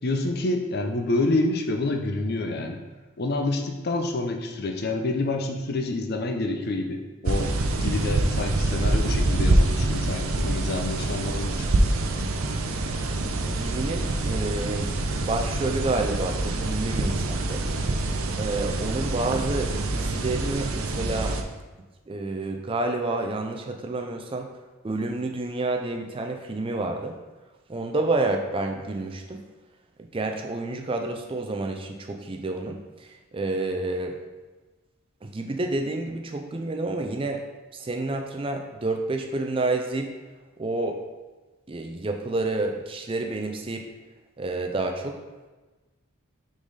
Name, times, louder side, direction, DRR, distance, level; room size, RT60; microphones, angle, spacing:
voice 1, 0.0-2.8 3.2-7.5 7.8-11.8, left 2 dB, 45° left, 4 dB, 0.6 m, -28 dB
sound 1, 7.3-21.4, right 2 dB, 75° right, 0.6 m, -25 dB
voice 2, 13.4-17.7 18.4-21.4 22.1-24.5 24.8-27.2 27.7-29.4 30.1-34.2 35.2-37.4 37.7-40.1 40.6-41.0 41.7-43.9 44.4-45.2, right 2 dB, 25° right, 4 dB, 0.4 m, -29 dB
6.0 x 3.9 x 4.0 m, 1.2 s
head